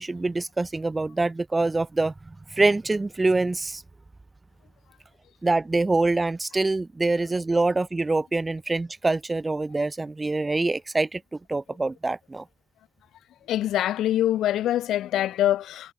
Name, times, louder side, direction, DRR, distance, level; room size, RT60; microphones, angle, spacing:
voice 1, 0.0-3.8 5.4-11.2 11.5-12.4, right 2 dB, 20° right, 2.4 m, -25 dB
voice 2, 13.5-15.9, left 12 dB, 80° left, 1.0 m, -24 dB
cardioid pair, 90°, 0 cm